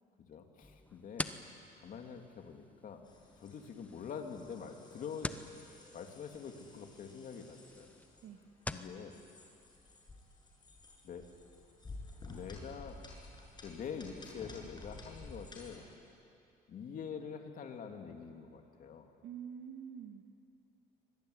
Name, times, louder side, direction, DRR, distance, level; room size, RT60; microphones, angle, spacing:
voice 1, 0.3-1.3 1.8-3.1 3.4-5.3 5.9-7.9 8.7-9.2 11.0-11.3 12.2-13.0 13.6-15.9 16.7-19.1, left 6 dB, 55° left, 4 dB, 3.0 m, -45 dB
sound 1, 0.6-9.0, left 2 dB, 10° left, 1.1 m, -47 dB
sound 2, 3.0-15.8, left 2 dB, 25° left, 6.9 m, -53 dB
voice 2, 19.2-20.2, right 8 dB, 75° right, 3 dB, 1.9 m, -46 dB
24.5 x 22.0 x 9.8 m, 2.5 s
cardioid pair, 110°, 17 cm